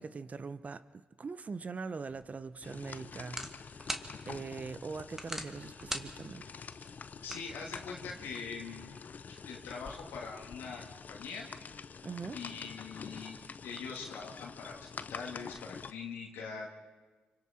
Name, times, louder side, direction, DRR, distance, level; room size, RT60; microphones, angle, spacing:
voice 1, 0.0-3.4 4.3-6.4 12.0-12.4, right 4 dB, 45° right, 0.9 m, -42 dB
sound 1, 2.1-8.2, right 1 dB, 10° right, 1.8 m, -45 dB
sound 2, 2.6-15.9, left 5 dB, 50° left, 0.7 m, -47 dB
voice 2, 7.2-8.9 9.3-11.5 12.3-16.7, left 5 dB, 90° left, 2.3 m, -43 dB
27.0 x 24.5 x 4.5 m
supercardioid pair, 60°, 4 cm